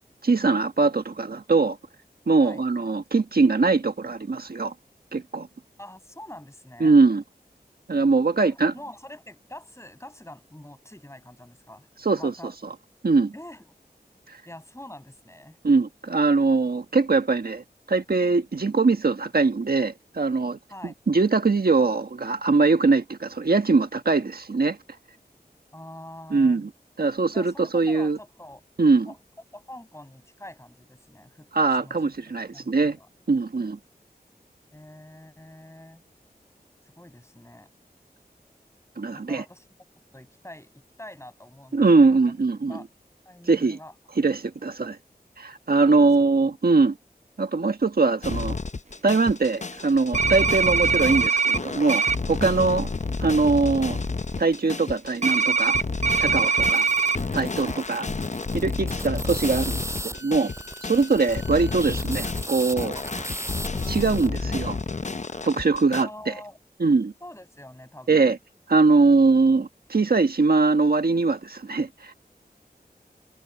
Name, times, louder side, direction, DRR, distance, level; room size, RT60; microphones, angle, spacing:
voice 1, 0.2-1.8 2.3-4.7 5.1-5.5 6.8-7.2 7.9-8.7 12.0-12.3 13.0-13.3 14.3-14.4 15.6-24.8 26.3-26.7 27.0-28.2 28.8-29.1 31.5-33.0 33.3-33.8 39.0-39.4 41.7-42.8 43.5-43.8 44.2-45.0 45.4-47.0 47.4-48.6 49.0-52.9 53.2-54.0 54.4-55.8 56.2-56.9 57.3-58.1 58.5-60.5 60.8-62.9 63.9-64.8 65.4-66.3 66.8-67.1 68.1-68.4 68.7-72.1, right 3 dB, 65° right, 1.4 m, -22 dB
voice 2, 5.8-7.0 8.4-12.5 13.3-13.8 14.5-15.6 20.7-20.9 25.7-26.6 27.3-28.6 29.1-29.2 29.5-31.5 31.8-32.1 32.5-33.1 34.7-36.0 36.8-37.7 39.1-39.7 40.1-42.2 42.7-42.9 43.3-43.9 45.9-46.1 57.6-57.8 65.9-66.6 67.2-68.3, left 1 dB, 15° left, 7.3 m, -45 dB
sound 1, 48.2-66.0, left 4 dB, 45° left, 0.8 m, -31 dB
sound 2, 50.1-51.6 51.9-52.1 55.2-57.2, right 5 dB, 45° right, 0.9 m, -22 dB
sound 3, 56.6-64.4, right 1 dB, 15° right, 5.7 m, -37 dB
wide cardioid pair, 50°, 17 cm